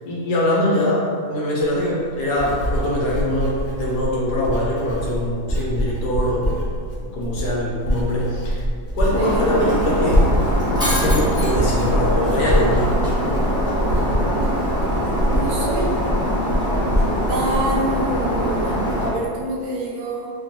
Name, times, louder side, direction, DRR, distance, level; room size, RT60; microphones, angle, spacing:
voice 1, 0.0-6.5 7.1-8.6 8.9-10.3 10.7-13.0, left 1 dB, 90° left, -5 dB, 1.4 m, -23 dB
Writing, 1.8-18.7 19.0-19.4, equal, 60° left, 0.8 m, -25 dB
Shatter, 9.1-19.1, equal, 5° right, 0.3 m, -23 dB
voice 2, 9.1-9.4 15.3-15.9 17.3-20.3, right 2 dB, 80° right, -3 dB, 1.1 m, -26 dB
3.5 x 2.2 x 2.7 m, 2.2 s
omnidirectional pair, 1.7 m